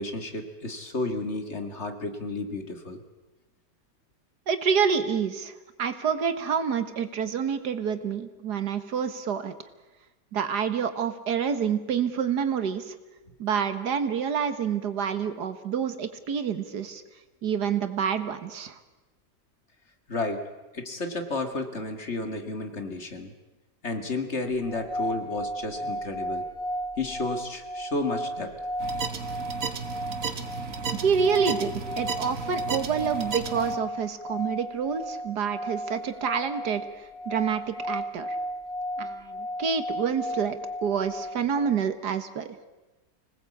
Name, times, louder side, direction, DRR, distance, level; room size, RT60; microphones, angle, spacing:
voice 1, 0.0-3.0 20.1-20.5 20.7-23.3 23.8-26.4 27.0-28.5, left 2 dB, 40° left, 6 dB, 2.1 m, -32 dB
voice 2, 4.5-9.5 10.3-13.0 13.4-17.0 17.4-18.8 31.0-38.4 39.0-42.5, right 7 dB, 70° right, 10 dB, 1.9 m, -28 dB
sound 1, 24.6-41.8, equal, 55° left, 2.7 m, -34 dB
sound 2, 28.8-33.8, right 5 dB, 55° right, 1.6 m, -34 dB
25.5 x 19.0 x 8.4 m, 1.1 s
omnidirectional pair, 1.8 m